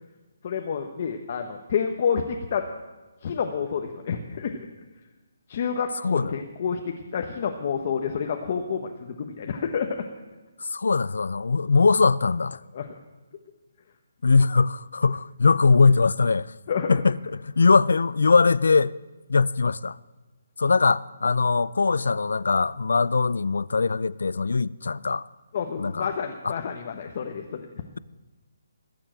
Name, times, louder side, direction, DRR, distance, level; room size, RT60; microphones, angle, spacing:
voice 1, 0.4-2.6 3.2-4.7 5.5-10.0 12.7-12.9 16.7-17.0 25.5-27.6, left 6 dB, 30° left, 0.9 m, -29 dB
voice 2, 10.6-12.6 14.2-16.5 16.9-18.9 19.3-20.0 20.6-25.2 25.8-26.1 26.4-26.5, left 4 dB, 75° left, 0.5 m, -21 dB
20.0 x 7.1 x 8.9 m
hypercardioid pair, 175°, 0 cm